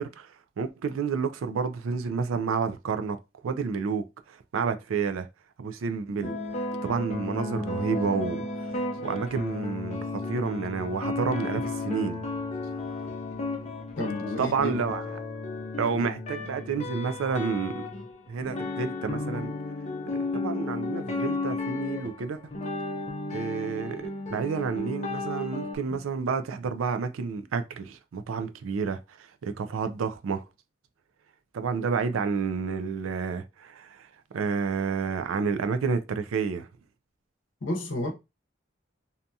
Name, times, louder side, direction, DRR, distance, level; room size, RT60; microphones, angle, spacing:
voice 1, 0.0-3.2 3.4-5.3 5.6-8.4 8.7-12.2 14.4-15.0 15.8-17.9 18.3-19.5 20.3-22.4 23.3-30.4 31.5-34.1 34.3-36.7, right 5 dB, 90° right, 0.4 m, -30 dB
sound 1, 6.2-25.8, left 2 dB, 35° left, 0.5 m, -33 dB
voice 2, 14.0-14.8 25.9-26.1 37.6-38.1, left 1 dB, 75° left, 0.8 m, -31 dB
2.7 x 2.3 x 2.6 m
head